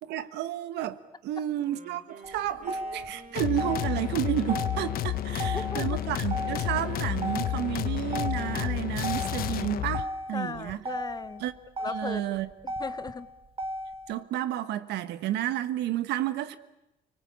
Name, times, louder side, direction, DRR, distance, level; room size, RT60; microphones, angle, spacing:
voice 1, 0.0-10.8 11.4-11.5 11.8-12.5 14.1-16.6, right 12 dB, 80° right, 1.5 m, -31 dB
Wind instrument woodwind instrument, 1.5-10.2, right 6 dB, 50° right, 3.2 m, -50 dB
Motor vehicle (road), 2.2-14.2, equal, 35° right, 1.7 m, -37 dB
sound 1, 3.4-10.0, left 12 dB, 60° left, 1.1 m, -31 dB
voice 2, 5.5-6.0 10.3-11.5 11.8-12.4 12.8-13.3, left 4 dB, 25° left, 1.1 m, -37 dB
30.0 x 20.0 x 8.6 m
cardioid pair, 110°, 17 cm